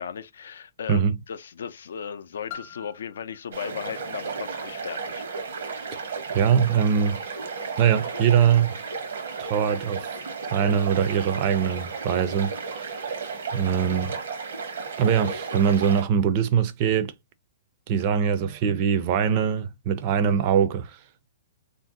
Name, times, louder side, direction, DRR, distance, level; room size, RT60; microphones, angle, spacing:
voice 1, 0.0-5.2, left 7 dB, 85° left, 0.4 m, -36 dB
Piano, 2.5-7.9 8.7-8.8, left 8 dB, 50° left, 0.8 m, -48 dB
sound 1, 3.5-16.0, right 5 dB, 80° right, 1.0 m, -34 dB
voice 2, 6.3-7.2 7.8-8.8 9.4-10.1 10.5-12.9 13.5-14.2 15.0-17.1 17.9-20.9, right 7 dB, 35° right, 0.4 m, -22 dB
2.6 x 2.0 x 3.7 m
hypercardioid pair, 160°, 0 cm